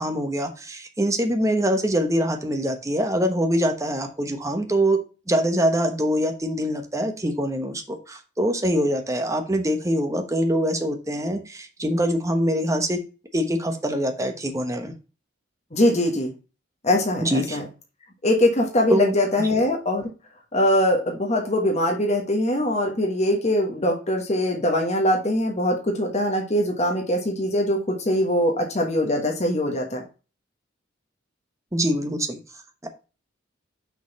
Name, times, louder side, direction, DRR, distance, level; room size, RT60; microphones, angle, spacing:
voice 1, 0.0-5.0 5.3-13.0 13.3-14.9 17.2-17.6 18.9-19.2 31.7-32.4 32.8-32.9, equal, 15° right, 5 dB, 1.0 m, -24 dB
voice 2, 15.7-16.3 16.8-17.6 18.2-20.1 20.5-30.0, left 1 dB, 35° left, 1 dB, 1.3 m, -22 dB
6.3 x 4.0 x 5.2 m, 0.33 s
head